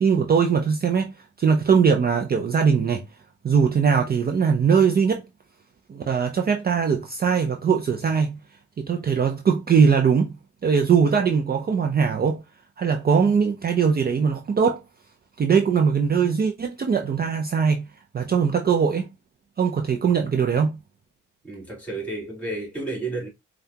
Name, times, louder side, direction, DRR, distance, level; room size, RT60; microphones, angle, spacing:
voice 1, 0.0-3.0 3.4-5.2 5.9-8.4 8.8-10.3 10.6-12.4 12.8-14.8 15.4-17.8 18.1-19.1 19.6-20.8, right 6 dB, 30° right, 0.5 m, -21 dB
voice 2, 21.4-23.3, right 2 dB, 5° left, 2.6 m, -31 dB
5.5 x 2.4 x 2.8 m
cardioid pair, 90°, 30 cm